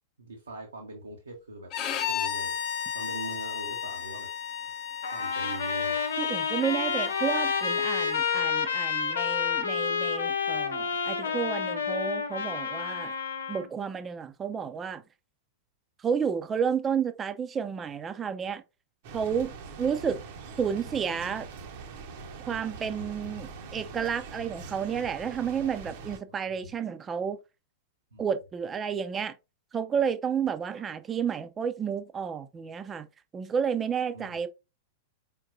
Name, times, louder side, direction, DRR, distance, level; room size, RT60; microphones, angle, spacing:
voice 1, 0.2-1.7 2.1-2.6 2.9-4.3 5.1-6.0 26.3-26.6 28.1-28.2 34.1-34.4, right 2 dB, 80° right, 0.9 m, -42 dB
Bowed string instrument, 1.7-8.5, left 8 dB, 40° left, 0.8 m, -35 dB
Trumpet, 5.0-13.7, left 6 dB, 70° left, 0.8 m, -29 dB
voice 2, 6.2-13.1 13.5-15.0 16.0-18.6 19.1-19.5 19.8-20.2 20.6-21.5 22.5-27.4 28.2-29.3 29.7-33.1 33.3-34.5, right 7 dB, 20° right, 0.5 m, -31 dB
sound 1, 19.0-26.2, right 4 dB, 50° right, 0.8 m, -43 dB
4.5 x 3.7 x 2.6 m
figure-of-eight pair, 95°, 0 cm